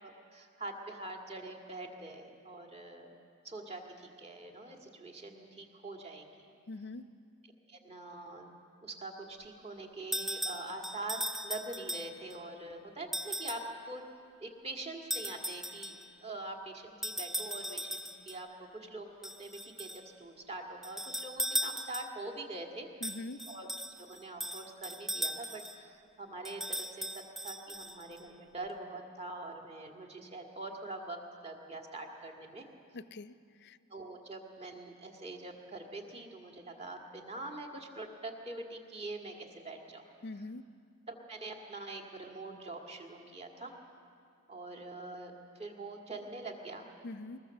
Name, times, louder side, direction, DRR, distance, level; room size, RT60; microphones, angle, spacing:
voice 1, 0.0-3.1 3.4-6.5 7.7-8.5 8.8-14.0 14.4-15.9 16.2-22.9 23.5-23.7 24.0-32.7 33.9-40.0 41.1-43.7 44.5-46.9, right 2 dB, 25° right, 2 dB, 1.9 m, -44 dB
voice 2, 6.7-7.1 23.0-23.4 32.9-33.4 33.6-33.8 40.2-40.6 47.0-47.4, left 2 dB, 50° left, 13 dB, 0.5 m, -43 dB
sound 1, 10.1-12.4 13.1-13.7 15.1-16.1 17.0-18.4 19.2-20.1 20.8-22.3 23.0-25.8 26.5-28.2, equal, ahead, 0.5 m, -38 dB
21.5 x 20.5 x 7.0 m, 2.3 s
head